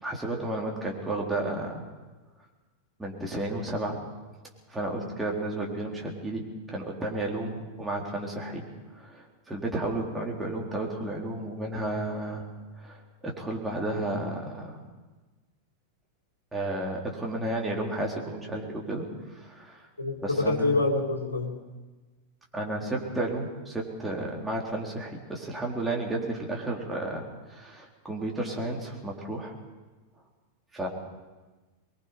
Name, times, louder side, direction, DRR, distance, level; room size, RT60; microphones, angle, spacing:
voice 1, 0.0-1.8 3.0-4.0 4.7-8.6 9.0-12.4 12.8-14.9 16.5-19.0 19.3-19.9 20.2-20.8 22.5-27.2 27.5-29.6 30.7-30.9, right 2 dB, 10° right, -2 dB, 3.8 m, -32 dB
voice 2, 20.0-21.6, left 2 dB, 80° left, 2 dB, 2.5 m, -26 dB
24.0 x 21.0 x 5.2 m, 1.2 s
figure-of-eight pair, 90°, 0 cm